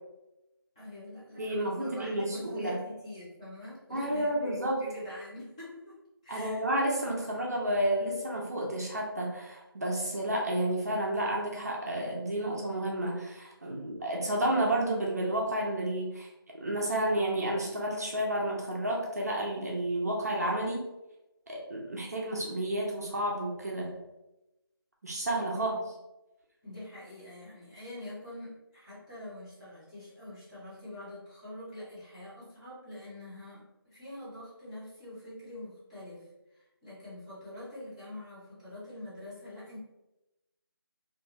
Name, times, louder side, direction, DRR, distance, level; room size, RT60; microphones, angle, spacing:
voice 1, 0.7-6.0 6.2-6.6 25.5-25.8 26.6-39.8, left 1 dB, 15° left, -10 dB, 0.7 m, -45 dB
voice 2, 1.4-2.8 3.9-4.8 6.3-20.8 21.5-23.9 25.0-25.7, right 1 dB, 40° right, -2 dB, 0.5 m, -31 dB
2.5 x 2.3 x 2.9 m, 0.96 s
figure-of-eight pair, 170°, 13 cm